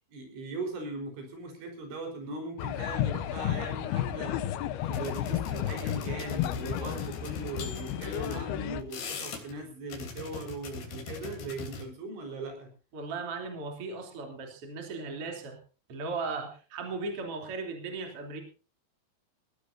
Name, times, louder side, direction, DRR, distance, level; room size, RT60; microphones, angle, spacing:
voice 1, 0.1-12.7, right 2 dB, 65° right, 3 dB, 6.8 m, -39 dB
sound 1, 2.6-8.8, left 11 dB, 75° left, 2.4 m, -32 dB
sound 2, 4.9-8.5 8.8-9.6 9.9-11.8, left 4 dB, 55° left, 5.1 m, -41 dB
voice 2, 12.9-15.6 15.9-18.4, right 3 dB, 30° right, 3 dB, 3.6 m, -37 dB
20.5 x 17.0 x 2.7 m, 0.36 s
omnidirectional pair, 5.8 m